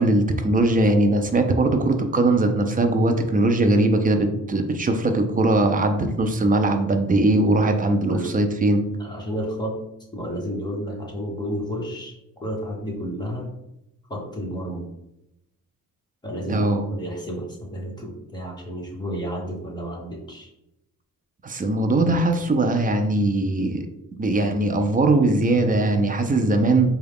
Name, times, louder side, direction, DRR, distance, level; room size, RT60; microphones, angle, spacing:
voice 1, 0.0-8.8 16.5-16.8 21.4-23.9 24.2-26.9, right 2 dB, 25° right, 5 dB, 0.4 m, -20 dB
voice 2, 9.0-9.8 10.1-12.1 12.4-13.5 14.1-14.8 16.2-20.5, equal, 10° left, -3 dB, 1.1 m, -31 dB
4.6 x 2.3 x 3.4 m, 0.86 s
cardioid pair, 120°, 35 cm